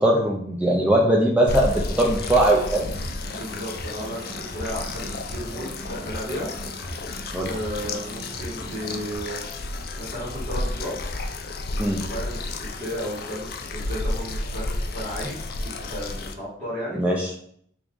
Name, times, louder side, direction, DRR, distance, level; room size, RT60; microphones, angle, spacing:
voice 1, 0.0-2.9 7.3-7.5 11.8-12.0 17.0-17.3, right 1 dB, 5° right, -2 dB, 0.4 m, -20 dB
sound 1, 1.5-16.3, left 2 dB, 55° left, 0.4 m, -32 dB
sound 2, 2.0-9.2, right 1 dB, 20° left, 1.4 m, -40 dB
voice 2, 3.3-6.5 7.4-9.4 9.9-10.9 11.7-15.4 15.6-17.0, equal, 40° right, -11 dB, 1.7 m, -34 dB
3.5 x 3.0 x 3.7 m, 0.66 s
head